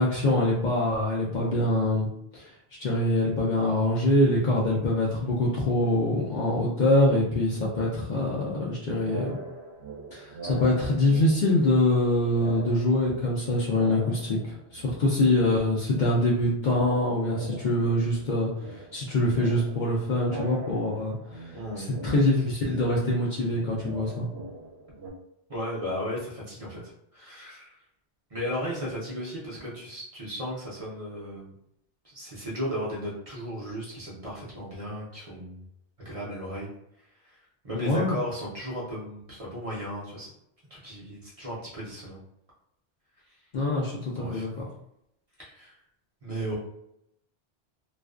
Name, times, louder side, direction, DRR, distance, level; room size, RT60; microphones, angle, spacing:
voice 1, 0.0-2.1 2.3-2.5 2.8-9.4 10.1-24.3 37.7-38.2 43.5-44.7, left 1 dB, 60° left, -4 dB, 0.5 m, -24 dB
sound 1, 5.7-6.5 6.8-8.7 9.0-12.0 12.3-14.9 15.1-25.1, right 3 dB, 80° right, 0.8 m, -42 dB
voice 2, 21.5-21.9 25.5-27.8 28.3-31.5 32.0-35.6 36.0-36.7 37.2-37.4 37.6-40.3 40.7-42.2 43.3-43.4 44.1-44.5 45.4-45.8 46.2-46.6, equal, 40° right, -6 dB, 0.7 m, -35 dB
2.4 x 2.2 x 2.3 m, 0.78 s
omnidirectional pair, 1.1 m